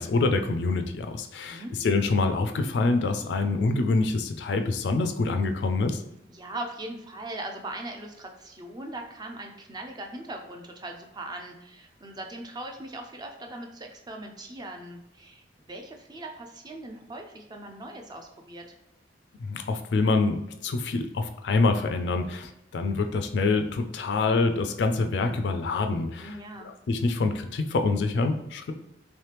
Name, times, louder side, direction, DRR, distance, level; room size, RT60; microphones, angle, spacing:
voice 1, 0.0-6.0 19.4-26.3 26.9-28.7, left 3 dB, 70° left, 7 dB, 0.3 m, -26 dB
voice 2, 6.3-18.7 26.2-26.7, right 1 dB, 25° right, 3 dB, 0.4 m, -40 dB
3.1 x 3.0 x 3.3 m, 0.86 s
head